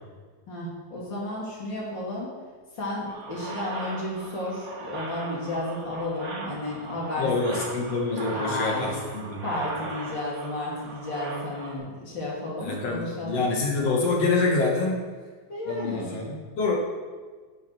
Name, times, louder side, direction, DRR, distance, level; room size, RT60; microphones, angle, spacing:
voice 1, 0.5-2.3 2.7-7.5 8.3-8.9 9.4-13.5 15.5-16.1, left 1 dB, 40° left, -5 dB, 3.1 m, -32 dB
sound 1, 3.1-11.8, right 3 dB, 40° right, 2.2 m, -38 dB
voice 2, 7.2-9.5 12.6-15.0 15.7-16.7, left 3 dB, 55° left, -2 dB, 2.7 m, -26 dB
10.5 x 8.9 x 4.6 m, 1.5 s
omnidirectional pair, 3.6 m